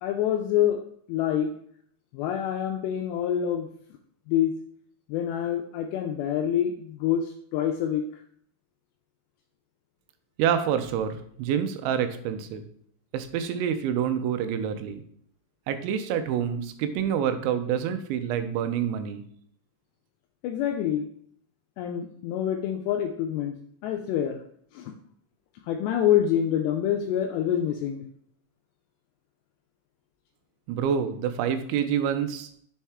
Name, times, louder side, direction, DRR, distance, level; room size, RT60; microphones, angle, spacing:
voice 1, 0.0-0.8 1.1-1.5 2.1-3.7 4.3-4.5 5.1-8.2 20.4-21.1 21.8-23.6 23.8-24.4 24.7-24.9 25.6-28.0, left 10 dB, 85° left, 3 dB, 2.4 m, -26 dB
voice 2, 10.4-12.6 13.1-15.0 15.7-19.2 30.7-32.5, right 8 dB, 85° right, 9 dB, 3.0 m, -27 dB
6.6 x 4.2 x 3.5 m, 0.64 s
omnidirectional pair, 5.3 m